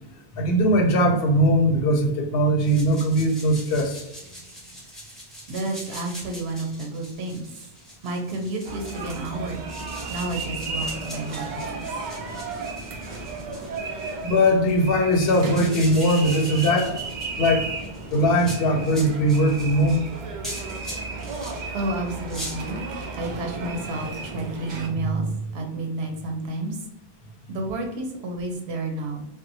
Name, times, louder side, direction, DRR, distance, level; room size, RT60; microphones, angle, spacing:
voice 1, 0.4-4.0 14.2-17.0 17.4-17.7 18.1-20.0 25.0-25.3, equal, 70° left, 4 dB, 0.7 m, -20 dB
sound 1, 2.6-21.6 22.1-22.5, equal, ahead, 0.8 m, -42 dB
voice 2, 5.5-7.4 8.0-9.6 10.1-11.8 14.3-14.4 21.7-22.8 23.2-25.3 25.5-26.8 27.5-29.3, right 2 dB, 85° right, 3 dB, 0.9 m, -30 dB
sound 2, 8.6-24.9, right 3 dB, 60° right, 0.6 m, -34 dB
2.8 x 2.1 x 2.6 m, 0.86 s
omnidirectional pair, 1.0 m